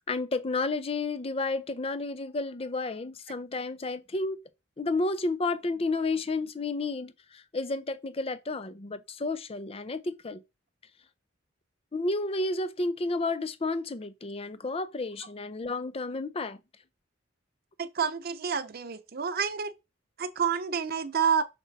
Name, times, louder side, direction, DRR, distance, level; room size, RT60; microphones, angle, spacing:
voice 1, 0.1-4.4 4.8-10.4 11.9-16.6, left 3 dB, 30° left, 0.6 m, -31 dB
voice 2, 17.8-19.7 20.2-21.4, right 6 dB, 50° right, 0.7 m, -29 dB
6.0 x 4.6 x 4.1 m
head